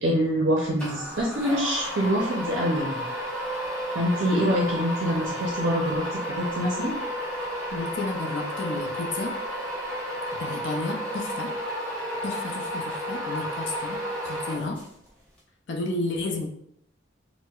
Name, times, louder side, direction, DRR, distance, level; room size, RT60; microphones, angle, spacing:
voice 1, 0.0-3.1 3.9-6.9, equal, 60° right, -2 dB, 0.5 m, -25 dB
sound 1, 0.8-15.1, equal, 5° left, 0.8 m, -32 dB
voice 2, 7.7-9.3 10.4-11.5 12.2-14.8 15.7-16.5, left 2 dB, 65° left, 1 dB, 0.5 m, -32 dB
4.4 x 2.1 x 2.3 m, 0.70 s
head